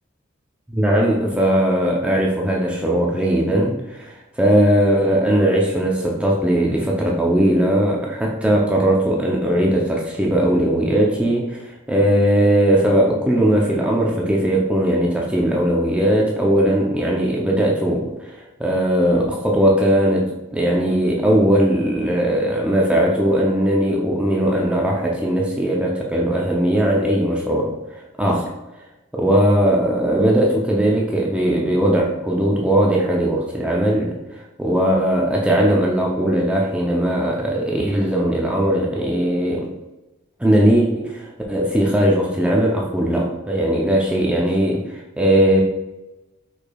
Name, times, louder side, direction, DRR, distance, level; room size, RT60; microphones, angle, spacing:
voice 1, 0.7-27.8 28.2-28.5 29.1-34.2 34.6-39.7 40.4-45.6, right 1 dB, 5° right, -2 dB, 0.5 m, -19 dB
4.9 x 4.3 x 2.3 m, 1.0 s
head